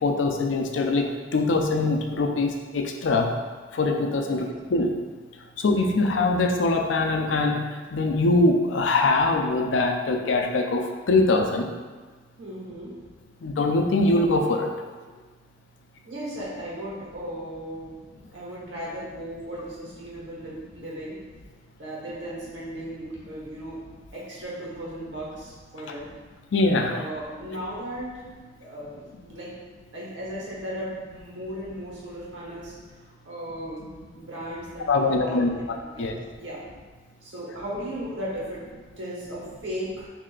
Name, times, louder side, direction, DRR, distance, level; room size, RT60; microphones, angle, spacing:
voice 1, 0.0-3.3 3.7-4.9 5.6-7.6 7.9-11.7 13.4-14.7 26.5-27.0 34.9-36.2, left 2 dB, 80° left, 3 dB, 0.4 m, -23 dB
voice 2, 12.4-12.9 16.0-18.0 18.3-21.2 21.8-23.8 24.1-26.1 26.9-28.1 28.6-29.5 29.9-32.7 33.0-35.4 35.9-36.6 37.2-38.6 39.0-40.1, equal, 75° right, -6 dB, 1.3 m, -36 dB
3.2 x 2.7 x 3.8 m, 1.4 s
head